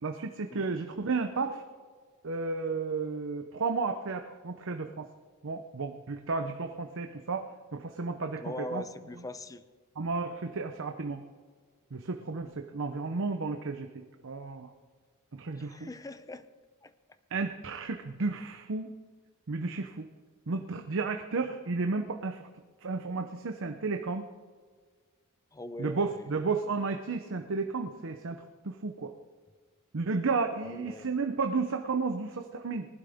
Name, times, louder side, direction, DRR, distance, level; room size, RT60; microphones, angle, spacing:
voice 1, 0.0-1.6 2.2-5.1 5.4-8.8 10.0-11.2 11.9-14.7 15.3-15.9 17.3-18.9 19.5-20.1 20.5-22.5 22.8-24.2 25.8-29.1 29.9-32.9, right 4 dB, 65° right, 6 dB, 0.8 m, -33 dB
voice 2, 8.4-9.6 15.5-16.5 16.8-16.9 25.5-26.2 30.6-31.1, left 2 dB, 15° left, 12 dB, 0.6 m, -41 dB
19.5 x 11.5 x 3.6 m, 1.5 s
head